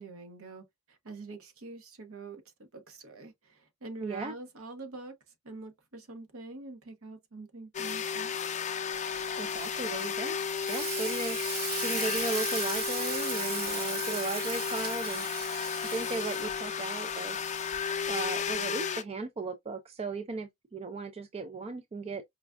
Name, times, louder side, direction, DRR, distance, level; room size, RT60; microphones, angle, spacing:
voice 1, 0.0-5.1 5.4-8.3, right 3 dB, 65° right, 1.0 m, -45 dB
voice 2, 4.0-4.3 9.4-10.4 10.7-11.4 11.8-15.3 15.9-17.4 18.1-22.2, right 3 dB, 30° right, 0.4 m, -36 dB
sound 1, 7.7-19.0, left 7 dB, 35° left, 0.5 m, -33 dB
Frying (food), 8.9-18.6, right 5 dB, 45° right, 1.3 m, -39 dB
5.0 x 2.3 x 2.4 m
head